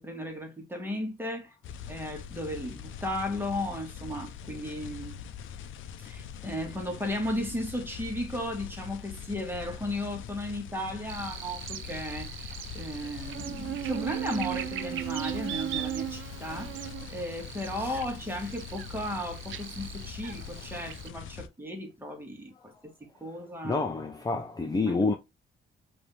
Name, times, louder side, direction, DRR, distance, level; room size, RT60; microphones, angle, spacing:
voice 1, 0.0-1.5 1.9-5.2 6.0-16.7 17.1-23.8 24.9-25.0, left 1 dB, 10° right, 1.7 m, -35 dB
sound 1, 1.6-21.5, left 8 dB, 80° left, 0.6 m, -43 dB
Buzz, 11.1-21.1, right 12 dB, 75° right, 0.5 m, -38 dB
voice 2, 23.6-25.1, left 3 dB, 20° left, 0.6 m, -28 dB
5.2 x 2.8 x 3.3 m
cardioid pair, 90°, 20 cm